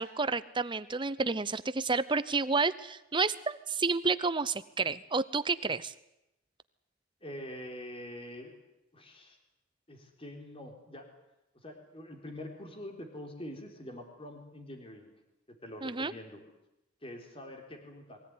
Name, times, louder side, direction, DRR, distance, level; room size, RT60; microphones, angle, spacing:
voice 1, 0.0-5.9 15.8-16.1, right 4 dB, 25° right, 15 dB, 0.8 m, -30 dB
voice 2, 7.2-8.5 8.9-9.4 9.9-11.1 11.5-15.1 15.5-16.4 17.0-18.2, left 1 dB, 30° left, 3 dB, 3.9 m, -45 dB
23.0 x 16.5 x 9.7 m, 0.88 s
head